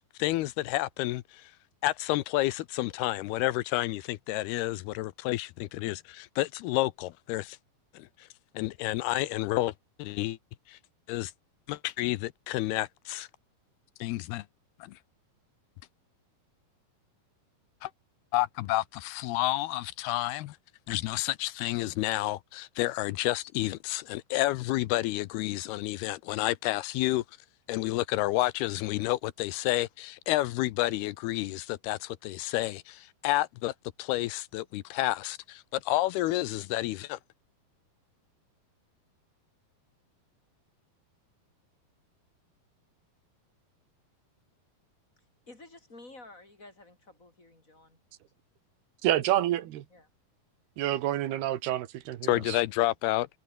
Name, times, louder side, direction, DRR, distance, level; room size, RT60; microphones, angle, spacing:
voice 1, 0.0-1.5 1.8-7.6 7.9-8.3 8.5-9.7 10.0-10.4 10.7-10.8 11.1-11.3 11.7-13.3 14.0-14.4 14.8-15.0 17.8-17.9 18.3-20.6 20.9-27.2 27.7-33.7 34.0-37.2 52.3-53.3, left 17 dB, 85° left, 2.8 m, -30 dB
voice 2, 45.5-48.0 49.9-50.1, left 2 dB, 20° left, 4.9 m, -51 dB
voice 3, 49.0-49.8 50.8-52.6, right 13 dB, 80° right, 3.4 m, -28 dB
omnidirectional pair, 4.5 m